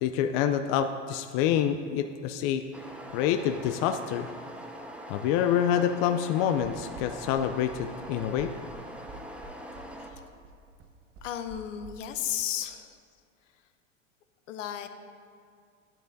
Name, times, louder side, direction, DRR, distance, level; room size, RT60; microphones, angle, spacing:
voice 1, 0.0-2.6 3.1-4.3 5.1-8.5, left 9 dB, 50° left, 8 dB, 0.5 m, -27 dB
sound 1, 2.7-10.1, right 1 dB, 5° right, 0.7 m, -43 dB
sound 2, 6.6-11.9, right 3 dB, 35° right, 0.9 m, -47 dB
voice 2, 11.2-13.0 14.5-14.9, left 10 dB, 75° left, 9 dB, 0.8 m, -34 dB
10.5 x 9.4 x 2.6 m, 2.3 s
hypercardioid pair, 90°, 38 cm